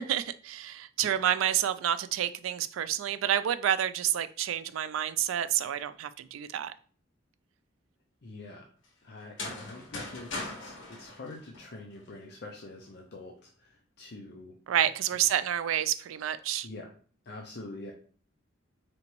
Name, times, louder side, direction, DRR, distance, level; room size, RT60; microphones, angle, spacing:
voice 1, 0.0-6.7 14.7-16.7, right 10 dB, 90° right, 13 dB, 0.3 m, -29 dB
voice 2, 8.2-8.7 9.0-14.6 15.1-15.2 16.6-16.9 17.2-17.9, left 2 dB, 55° left, 0 dB, 0.5 m, -45 dB
sound 1, 9.2-12.1, left 2 dB, 75° left, 1.2 m, -40 dB
3.9 x 3.4 x 3.0 m, 0.43 s
head